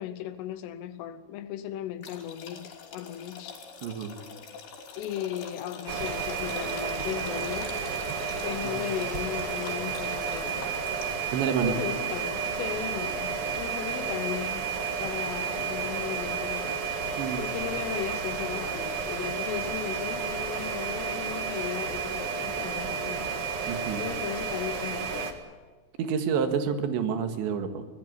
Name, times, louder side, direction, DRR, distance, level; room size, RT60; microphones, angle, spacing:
voice 1, 0.0-3.6 5.0-7.8 8.4-10.6 11.6-14.7 15.0-16.9 17.4-23.7 24.0-25.4, left 11 dB, 85° left, 3.5 m, -36 dB
sound 1, 2.0-11.3, left 5 dB, 55° left, 4.7 m, -44 dB
voice 2, 3.8-4.2 8.6-8.9 11.3-11.8 17.2-17.5 23.7-24.0 26.0-27.8, right 7 dB, 70° right, 3.7 m, -29 dB
sound 2, 5.9-25.3, right 6 dB, 55° right, 1.6 m, -32 dB
25.5 x 17.0 x 9.7 m
omnidirectional pair, 5.7 m